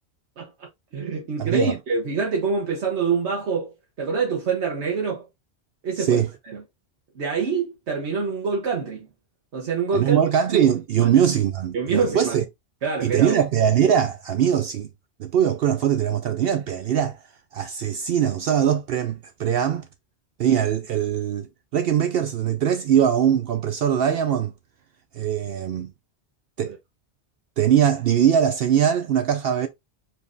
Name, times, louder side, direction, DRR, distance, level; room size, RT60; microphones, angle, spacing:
voice 1, 0.4-3.7 4.0-5.3 5.8-6.6 7.1-9.1 9.5-10.2 10.5-10.6 11.0-11.1 11.7-12.4 12.8-13.3 26.6-26.8, right 5 dB, 85° right, 1.3 m, -26 dB
voice 2, 1.4-1.7 6.0-6.3 9.9-12.4 13.0-14.9 15.2-17.2 17.5-19.9 20.4-24.5 25.1-25.9 26.6-26.7 27.6-29.7, right 9 dB, 65° right, 0.7 m, -21 dB
5.1 x 3.2 x 2.6 m
omnidirectional pair, 1.1 m